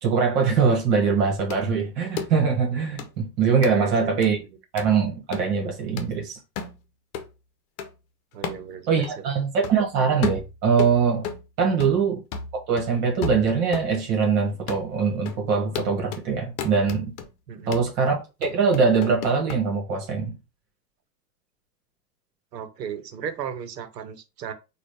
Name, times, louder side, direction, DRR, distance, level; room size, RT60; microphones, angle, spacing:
voice 1, 0.0-4.4 4.7-6.4 8.9-11.3 11.6-12.2 12.5-17.1 17.7-20.4, right 5 dB, 50° right, 1.6 m, -22 dB
sound 1, 1.5-1.6 2.2-2.3 3.0-3.1 3.6-3.8 4.2-4.3 4.8-5.0 5.3-5.5 6.0-6.1 6.6-6.8 7.1-7.3 7.8-7.9 8.4-8.7 9.0-9.1 9.6-9.8 10.2-11.4 11.8-12.1 12.3-13.9 14.2-14.3 14.7-14.9 15.3-15.4 15.8-16.3 16.6-17.3 17.7-17.9 18.4-19.6, left 6 dB, 45° left, 0.9 m, -33 dB
voice 2, 3.7-4.3 8.3-9.4 11.7-11.9 17.5-17.8 22.5-24.5, right 8 dB, 80° right, 1.0 m, -36 dB
4.0 x 2.5 x 3.3 m
hypercardioid pair, 100°, 49 cm